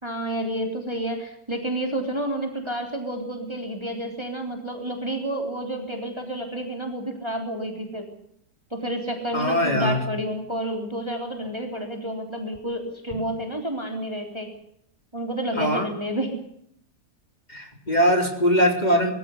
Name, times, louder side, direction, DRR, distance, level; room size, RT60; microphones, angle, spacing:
voice 1, 0.0-8.1 8.7-14.5 15.1-16.3, right 1 dB, 15° right, 3 dB, 3.5 m, -30 dB
voice 2, 9.3-10.0 15.6-15.9 17.5-19.1, equal, 25° left, 3 dB, 4.2 m, -21 dB
23.0 x 16.0 x 9.6 m, 0.71 s
omnidirectional pair, 1.9 m